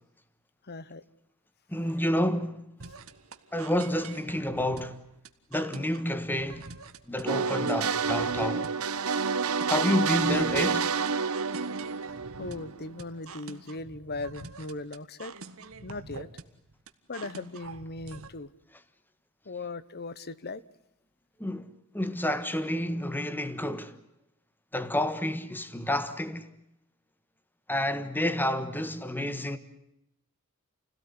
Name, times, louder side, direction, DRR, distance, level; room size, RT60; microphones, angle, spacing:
voice 1, 0.7-1.0 12.4-15.3 15.8-16.3 17.1-18.5 19.5-20.6, left 3 dB, 50° left, 1.1 m, -38 dB
voice 2, 1.7-2.6 3.5-5.0 5.5-6.7 7.1-8.7 9.7-10.9 21.4-21.7 21.9-24.0 24.7-26.5 27.7-29.6, left 1 dB, 10° left, 1.5 m, -29 dB
sound 1, 2.8-18.3, right 4 dB, 70° right, 1.7 m, -46 dB
sound 2, 7.3-13.0, right 5 dB, 90° right, 1.2 m, -29 dB
28.5 x 17.5 x 9.7 m
head